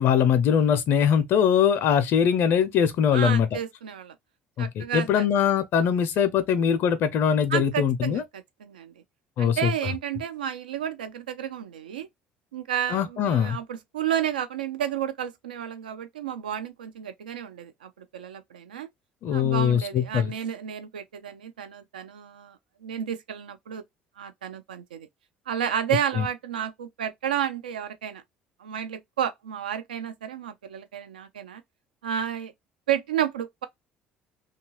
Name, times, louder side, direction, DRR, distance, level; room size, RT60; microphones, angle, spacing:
voice 1, 0.0-3.5 4.6-8.2 9.4-9.7 12.9-13.6 19.2-20.3, left 8 dB, 55° left, 0.4 m, -22 dB
voice 2, 3.1-4.1 4.6-5.2 7.5-8.9 9.4-12.1 12.5-18.9 19.3-23.8 24.2-25.1 25.5-28.2 28.6-31.6 32.0-32.5 32.9-33.6, right 9 dB, 85° right, 0.4 m, -31 dB
2.7 x 2.3 x 3.0 m
hypercardioid pair, 60°, 5 cm